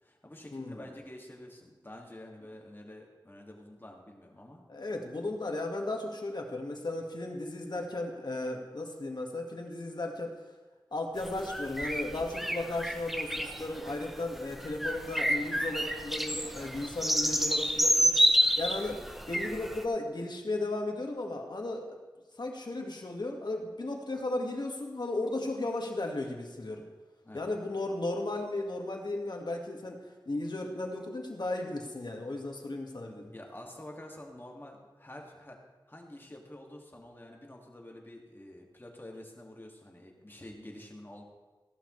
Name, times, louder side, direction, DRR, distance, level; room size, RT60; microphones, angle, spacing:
voice 1, 0.0-4.6 27.2-27.5 33.2-35.6 35.9-41.2, left 1 dB, 25° left, 0 dB, 2.2 m, -48 dB
voice 2, 0.5-0.8 4.7-10.4 10.9-18.1 18.6-19.0 19.3-22.0 22.4-26.8 27.3-30.0 30.3-33.3, left 2 dB, 60° left, 2 dB, 1.8 m, -35 dB
sound 1, 11.2-19.8, equal, ahead, 0.7 m, -29 dB
16.0 x 11.5 x 3.3 m, 1.2 s
wide cardioid pair, 75°, 8 cm